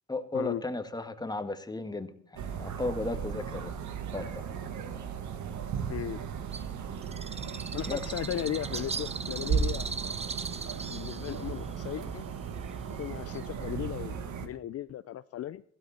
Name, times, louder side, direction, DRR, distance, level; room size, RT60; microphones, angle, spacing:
voice 1, 0.1-3.7 4.1-4.4 7.9-8.0, left 2 dB, 15° left, 1.6 m, -35 dB
sound 1, 2.4-14.5, right 6 dB, 70° right, 1.8 m, -36 dB
voice 2, 5.9-6.2 7.7-9.9 10.9-12.2 13.0-14.2 14.4-15.6, left 12 dB, 55° left, 0.5 m, -36 dB
Bird, 6.5-13.7, right 4 dB, 20° right, 0.7 m, -40 dB
15.0 x 13.0 x 4.3 m
cardioid pair, 90°, 30 cm